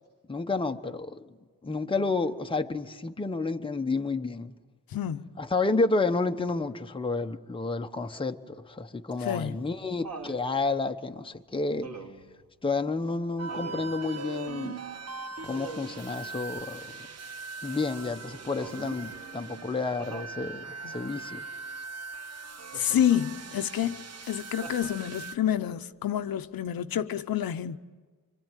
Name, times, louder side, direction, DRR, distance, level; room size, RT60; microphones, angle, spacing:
voice 1, 0.3-1.2 1.6-4.5 5.4-11.9 12.6-14.8 15.4-16.9 17.6-21.4, left 3 dB, 15° left, 0.9 m, -30 dB
voice 2, 4.9-5.3 9.2-9.6 20.8-20.9 22.7-27.8, left 10 dB, 80° left, 0.9 m, -28 dB
Laughter, 9.1-10.4 11.8-12.3 13.5-13.9 15.5-16.0 18.6-19.1 20.0-20.4 22.7-23.2 24.6-25.3 26.6-26.7, right 4 dB, 75° right, 3.6 m, -43 dB
sound 1, 13.4-25.4, right 4 dB, 45° right, 1.0 m, -41 dB
25.5 x 25.5 x 9.1 m
wide cardioid pair, 150°, 35 cm